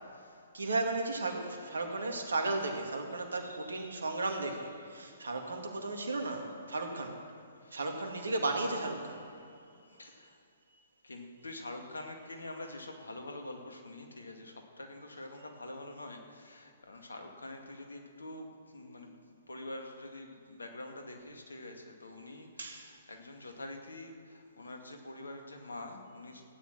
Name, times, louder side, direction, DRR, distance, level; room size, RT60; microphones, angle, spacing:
voice 1, 0.0-0.5 7.6-7.8 9.9-10.4 11.0-26.4, left 2 dB, 80° left, 3 dB, 2.1 m, -46 dB
voice 2, 0.5-7.2 7.7-9.3 10.7-10.8 22.6-22.9, right 2 dB, 70° right, 3 dB, 2.3 m, -35 dB
15.5 x 10.0 x 6.1 m, 2.5 s
figure-of-eight pair, 125°, 0 cm